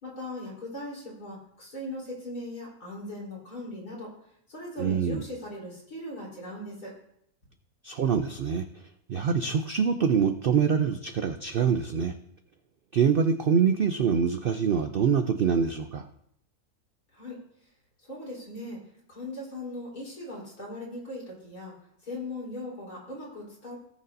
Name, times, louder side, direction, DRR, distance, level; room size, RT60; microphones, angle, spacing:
voice 1, 0.0-4.1 4.5-6.9 17.1-17.4 18.1-18.8 19.1-21.7 22.0-23.8, left 1 dB, 75° left, -5 dB, 4.4 m, -39 dB
voice 2, 4.8-5.2 7.8-8.6 9.1-12.1 12.9-16.1, right 6 dB, 75° right, 8 dB, 0.5 m, -25 dB
18.0 x 6.7 x 2.7 m, 0.73 s
omnidirectional pair, 1.6 m